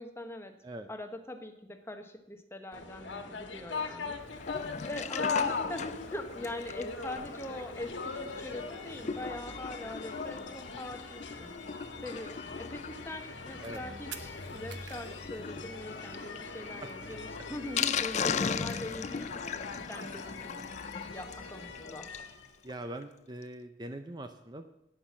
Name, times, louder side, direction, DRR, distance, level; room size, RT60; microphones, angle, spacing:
voice 1, 0.0-0.5 0.9-4.2 4.8-11.5 12.0-20.6 21.1-22.1, left 1 dB, 15° left, 6 dB, 1.0 m, -42 dB
sound 1, 2.7-22.5, left 4 dB, 85° left, 1.5 m, -40 dB
Sink (filling or washing), 4.3-22.3 22.7-22.8 23.0-23.1 23.4-23.5, left 6 dB, 40° left, 0.4 m, -39 dB
sound 2, 13.6-13.8 14.1-16.2 16.6-16.7 16.9-17.0 17.2-17.7 18.0-19.2 19.5-21.1, right 9 dB, 70° right, 0.9 m, -50 dB
voice 2, 16.8-17.2 22.6-24.7, right 1 dB, 20° right, 7 dB, 0.6 m, -42 dB
11.5 x 9.0 x 7.3 m, 0.85 s
head